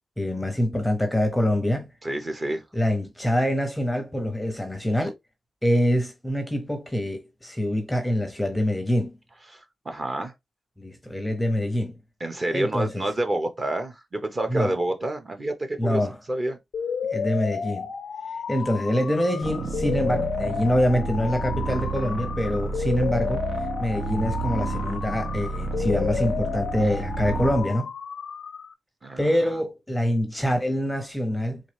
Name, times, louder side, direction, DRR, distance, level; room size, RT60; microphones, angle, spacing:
voice 1, 0.2-1.9 2.7-5.1 5.6-9.2 10.8-12.0 12.5-13.1 14.5-14.7 15.8-16.2 17.1-17.9 18.5-23.5 23.8-27.9 29.2-31.6, equal, 5° left, 0.7 m, -25 dB
voice 2, 2.0-2.6 9.5-10.3 12.2-16.0 16.3-16.6 29.0-29.3, right 1 dB, 30° right, 1.0 m, -28 dB
sound 1, 16.7-28.7, left 6 dB, 75° left, 0.4 m, -32 dB
sound 2, 19.4-27.7, right 3 dB, 85° right, 0.7 m, -30 dB
4.0 x 3.2 x 3.3 m
wide cardioid pair, 145°, 0 cm